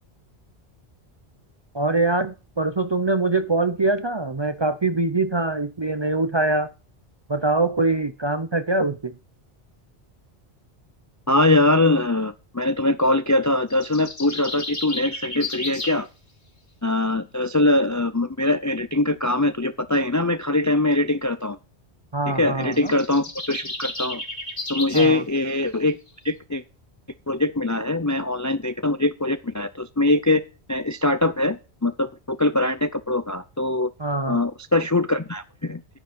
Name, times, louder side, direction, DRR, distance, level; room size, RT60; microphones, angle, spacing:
voice 1, 1.7-6.7 7.3-9.2 22.1-22.9 24.9-25.2 34.0-34.4, right 2 dB, 30° right, 0.5 m, -23 dB
voice 2, 11.3-16.1 16.8-21.6 22.3-24.2 24.7-26.0 26.2-26.6 27.3-30.4 30.7-33.9 34.3-35.8, left 2 dB, 25° left, 0.4 m, -22 dB
sound 1, 13.7-16.0 22.6-25.2, left 2 dB, 45° left, 2.7 m, -32 dB
10.5 x 9.9 x 5.1 m
omnidirectional pair, 1.1 m